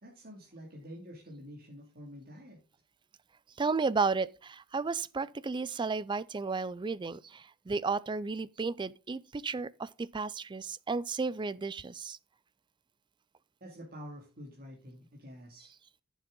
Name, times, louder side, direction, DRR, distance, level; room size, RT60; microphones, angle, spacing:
voice 1, 0.0-2.6 13.6-15.7, equal, 45° right, 2.3 m, -48 dB
voice 2, 3.6-12.2, right 4 dB, 20° right, 0.4 m, -33 dB
11.0 x 7.2 x 3.8 m
head